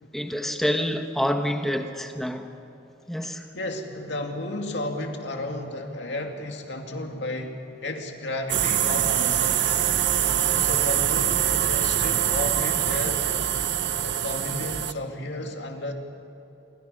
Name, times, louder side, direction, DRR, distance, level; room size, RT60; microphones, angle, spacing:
voice 1, 0.1-2.5 3.1-3.4, equal, ahead, 5 dB, 1.4 m, -27 dB
voice 2, 3.5-9.8 10.4-13.3 14.0-15.9, left 1 dB, 80° left, 3 dB, 2.3 m, -33 dB
sound 1, 8.5-14.9, right 10 dB, 75° right, 0.7 m, -24 dB
28.0 x 23.0 x 5.4 m, 2.9 s
head